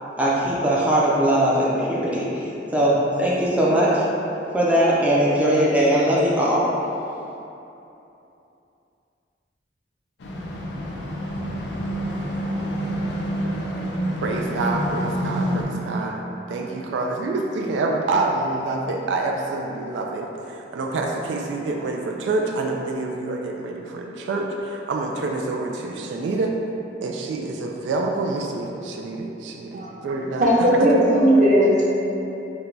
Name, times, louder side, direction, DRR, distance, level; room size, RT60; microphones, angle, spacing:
voice 1, 0.2-4.0 4.5-6.7, right 1 dB, 10° right, -7 dB, 0.4 m, -20 dB
sound 1, 10.2-15.6, equal, 70° left, 0.5 m, -27 dB
voice 2, 14.2-16.2 16.5-26.5 27.0-30.7, right 3 dB, 90° right, 1 dB, 0.3 m, -27 dB
voice 3, 30.4-31.9, equal, 45° right, -6 dB, 0.8 m, -17 dB
4.3 x 2.2 x 3.8 m, 2.9 s
head